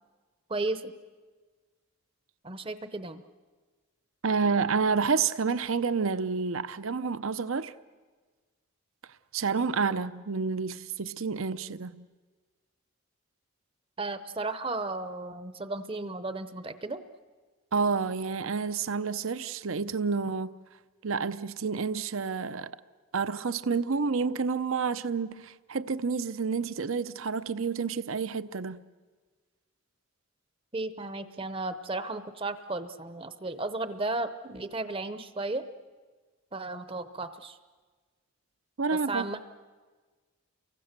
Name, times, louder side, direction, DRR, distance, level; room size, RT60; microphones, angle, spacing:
voice 1, 0.5-0.9 2.4-3.2 14.0-17.0 30.7-35.6 36.5-37.6 39.1-39.4, right 2 dB, 25° right, 0.8 m, -34 dB
voice 2, 4.2-7.7 9.3-12.0 17.7-20.5 21.0-22.7 23.1-28.8 38.8-39.4, right 5 dB, 70° right, 0.7 m, -29 dB
29.5 x 23.5 x 6.7 m
head